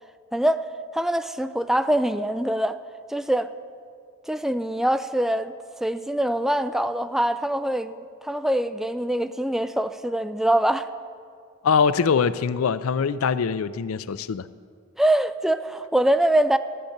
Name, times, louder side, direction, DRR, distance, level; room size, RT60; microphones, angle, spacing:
voice 1, 0.3-0.7 0.9-2.8 3.1-3.5 4.3-5.5 5.8-10.9 15.0-16.6, right 1 dB, ahead, 11 dB, 0.3 m, -23 dB
voice 2, 11.6-14.5, left 6 dB, 80° left, 16 dB, 0.4 m, -23 dB
13.0 x 6.6 x 8.6 m, 2.2 s
head